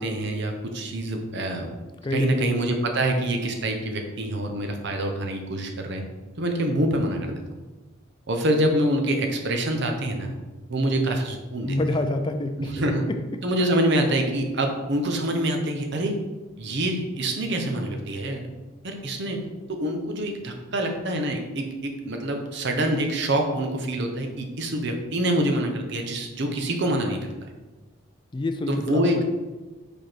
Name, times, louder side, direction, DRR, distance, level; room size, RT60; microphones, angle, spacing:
voice 1, 0.0-1.7 2.1-6.0 6.4-7.4 8.3-10.3 10.7-11.8 12.6-13.0 13.4-16.2 16.6-18.5 18.8-19.4 19.7-27.3 28.7-29.2, right 1 dB, 55° right, 3 dB, 0.8 m, -26 dB
voice 2, 2.0-2.8 11.7-12.7 28.3-29.2, left 1 dB, 20° left, 7 dB, 0.3 m, -27 dB
5.0 x 4.5 x 4.5 m, 1.2 s
head